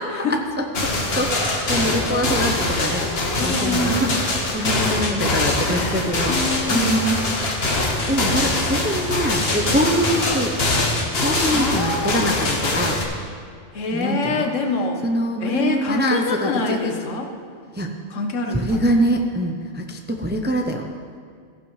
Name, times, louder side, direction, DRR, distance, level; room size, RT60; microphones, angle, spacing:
voice 1, 0.0-6.3 6.7-7.3 8.1-10.8 11.2-13.0 13.9-14.5 15.0-17.0 17.7-17.9 18.5-20.9, equal, 15° right, 3 dB, 0.3 m, -24 dB
sound 1, 0.7-13.0, left 2 dB, 55° left, 1.5 m, -23 dB
voice 2, 1.8-2.2 2.8-4.1 4.6-4.7 5.6-6.8 11.5-12.3 13.7-15.0 15.4-17.3 18.1-18.9, left 3 dB, 90° left, 4 dB, 1.4 m, -26 dB
14.5 x 11.0 x 3.2 m, 2.1 s
omnidirectional pair, 1.3 m